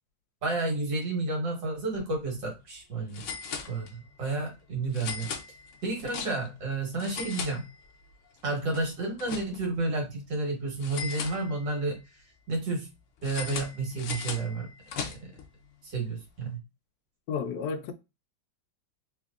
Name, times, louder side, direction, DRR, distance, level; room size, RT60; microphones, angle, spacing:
voice 1, 0.4-3.2 3.7-5.3 5.8-7.7 8.4-12.2 12.5-12.9 13.2-14.7 15.0-15.2 15.8-16.6, right 2 dB, 75° right, 2.1 m, -31 dB
sound 1, 2.0-2.1 2.4-2.5 3.1-4.2 4.9-6.6 6.9-8.1 8.4-9.8 10.8-11.9 13.2-15.5, left 6 dB, 90° left, 0.6 m, -38 dB
voice 2, 17.3-17.9, left 6 dB, 70° left, 1.0 m, -31 dB
3.6 x 3.2 x 2.4 m
omnidirectional pair, 2.0 m